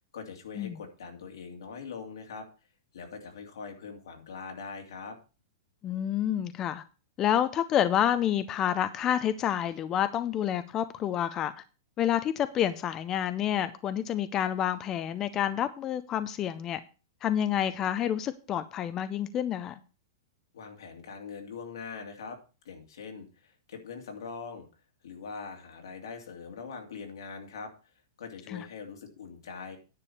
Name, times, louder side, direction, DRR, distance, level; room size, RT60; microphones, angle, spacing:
voice 1, 0.1-2.5 2.9-5.2 20.5-22.4 22.6-24.7 25.0-27.7 28.2-29.8, left 5 dB, 90° left, 2.6 m, -42 dB
voice 2, 5.8-6.8 7.2-11.5 12.0-16.8 17.2-19.8 28.5-28.7, left 10 dB, 20° left, 0.5 m, -28 dB
9.9 x 5.0 x 7.1 m
supercardioid pair, 170°, 2 cm